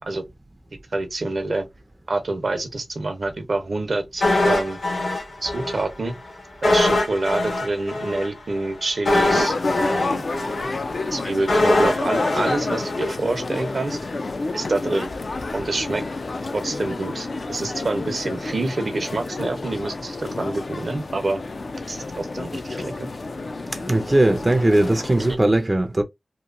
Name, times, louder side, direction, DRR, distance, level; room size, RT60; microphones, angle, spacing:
voice 1, 0.9-1.7 2.1-4.8 5.4-6.1 6.6-10.2 11.1-14.0 14.5-15.1 15.5-16.0 16.5-21.4 21.9-23.1, right 2 dB, 65° right, 0.7 m, -27 dB
sound 1, 4.2-5.8 6.1-6.2 6.6-13.7 14.0-14.1, left 2 dB, 80° left, 1.4 m, -23 dB
sound 2, 9.1-25.4, left 3 dB, 65° left, 0.4 m, -30 dB
voice 2, 23.7-26.0, right 1 dB, 25° right, 0.4 m, -19 dB
2.9 x 2.2 x 2.4 m
wide cardioid pair, 55°, 0 cm